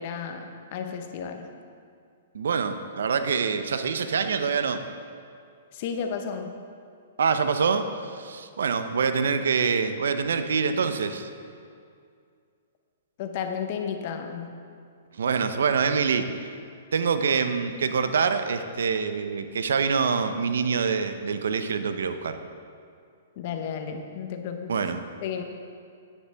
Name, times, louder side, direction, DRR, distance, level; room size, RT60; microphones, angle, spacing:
voice 1, 0.0-1.5 5.7-6.6 13.2-14.5 23.4-24.9 25.2-25.4, left 7 dB, 50° left, 6 dB, 0.9 m, -33 dB
voice 2, 2.3-4.8 7.2-11.3 15.1-16.3 16.9-22.4 24.7-25.0, right 5 dB, 80° right, 9 dB, 0.6 m, -25 dB
9.6 x 9.6 x 3.4 m, 2.3 s
hypercardioid pair, 140°, 0 cm